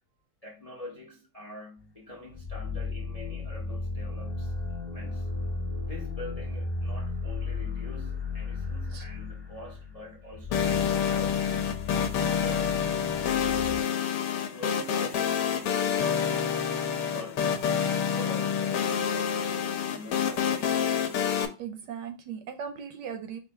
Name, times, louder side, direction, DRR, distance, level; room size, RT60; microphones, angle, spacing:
voice 1, 0.4-4.5 4.9-5.3 5.8-12.9 13.2-14.0 14.4-17.6 18.0-20.8, left 2 dB, 50° left, 0.4 m, -45 dB
sound 1, 2.3-13.8, left 4 dB, 25° left, 1.3 m, -35 dB
sound 2, 10.5-21.5, left 7 dB, 70° left, 1.1 m, -27 dB
voice 2, 21.6-23.4, right 7 dB, 75° right, 1.1 m, -38 dB
4.6 x 2.5 x 4.4 m
omnidirectional pair, 2.2 m